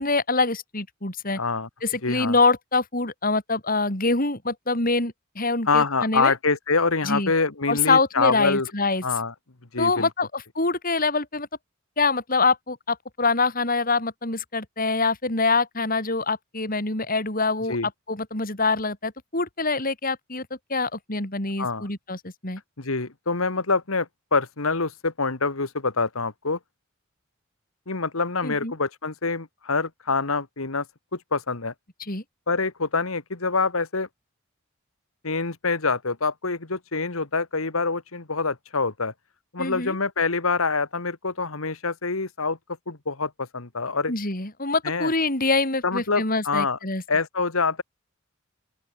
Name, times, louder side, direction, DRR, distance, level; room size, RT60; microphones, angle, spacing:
voice 1, 0.0-1.4 1.8-6.3 7.0-7.3 7.7-9.0 9.8-11.5 12.0-17.8 18.1-22.6 28.4-28.7 32.1-32.2 39.6-40.0 44.1-47.0, left 3 dB, 45° left, 5.8 m, -25 dB
voice 2, 1.4-1.7 2.0-2.4 5.7-8.7 9.0-9.3 9.7-10.1 17.7-17.9 21.6-21.9 22.8-26.6 27.9-30.9 31.1-31.7 32.5-34.1 35.2-39.1 39.5-42.6 42.9-44.1 44.8-45.1 45.8-46.8 47.1-47.8, left 4 dB, 85° left, 2.0 m, -25 dB
open air
head